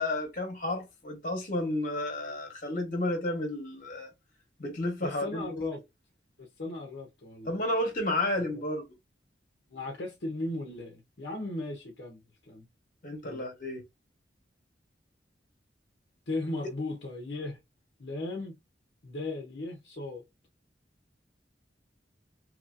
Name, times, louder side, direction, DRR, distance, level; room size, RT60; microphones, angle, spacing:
voice 1, 0.0-4.1 4.6-5.5 7.4-8.8 13.0-13.8, left 1 dB, 50° left, 1.2 m, -31 dB
voice 2, 5.0-5.8 6.4-7.6 9.7-12.2 12.5-12.6 13.2-13.4 16.3-17.6 18.0-18.5 19.0-20.2, left 2 dB, 70° left, 0.8 m, -36 dB
2.9 x 2.7 x 2.6 m
head